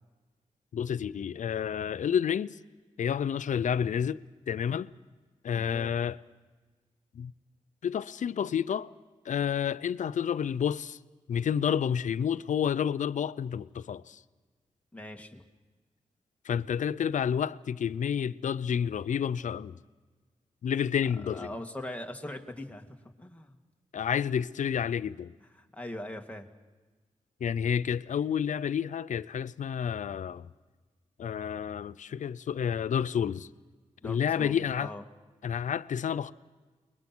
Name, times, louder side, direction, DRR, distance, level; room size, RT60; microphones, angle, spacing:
voice 1, 0.7-2.6 3.0-4.9 5.4-6.2 7.1-7.3 7.8-8.9 9.3-11.0 11.3-14.2 16.4-19.8 20.6-21.5 23.9-25.3 27.4-30.5 31.2-33.5 34.0-34.9 35.4-36.3, left 8 dB, 70° left, 0.6 m, -30 dB
voice 2, 5.5-5.9 14.9-15.4 21.3-23.5 25.7-26.5 34.0-35.0, left 1 dB, 10° left, 2.3 m, -41 dB
29.5 x 21.5 x 6.2 m
cardioid pair, 60°, 13 cm